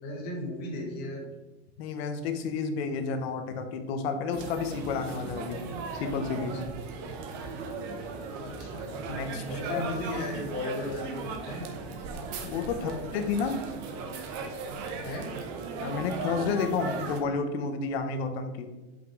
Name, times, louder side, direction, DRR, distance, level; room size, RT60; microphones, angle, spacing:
voice 1, 0.0-1.3 8.4-8.9 9.4-11.7 12.8-13.0 15.0-15.3, left 1 dB, 30° left, -2 dB, 1.7 m, -36 dB
voice 2, 1.8-5.6 5.9-6.6 9.1-9.8 12.4-13.6 15.8-18.7, left 5 dB, 65° left, 7 dB, 1.0 m, -31 dB
sound 1, 4.3-17.2, right 4 dB, 40° right, 0.8 m, -37 dB
5.6 x 5.6 x 4.7 m, 1.2 s
supercardioid pair, 180°, 33 cm